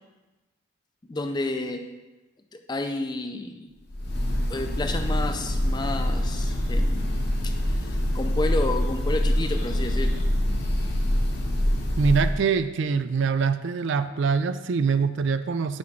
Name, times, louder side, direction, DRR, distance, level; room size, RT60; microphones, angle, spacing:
voice 1, 1.1-1.8 2.5-3.7 4.5-10.1, left 2 dB, 20° left, 6 dB, 0.4 m, -31 dB
Breathing / Bird, 3.9-12.4, left 1 dB, 50° left, 0.9 m, -25 dB
voice 2, 12.0-15.8, right 5 dB, 65° right, 11 dB, 0.3 m, -24 dB
6.2 x 4.3 x 5.8 m, 1.1 s
head